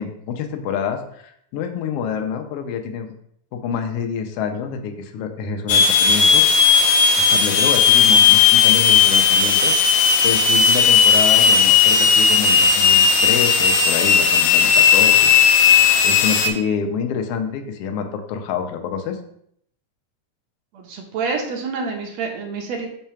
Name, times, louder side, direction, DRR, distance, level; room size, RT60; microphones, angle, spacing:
voice 1, 0.0-3.1 3.5-6.4 7.2-15.3 16.0-19.2, left 6 dB, 70° left, 5 dB, 1.5 m, -27 dB
sound 1, 5.7-16.5, left 6 dB, 90° left, 2.1 m, -15 dB
voice 2, 20.7-22.9, right 4 dB, 70° right, 2 dB, 1.9 m, -27 dB
6.0 x 3.3 x 5.6 m, 0.69 s
omnidirectional pair, 3.3 m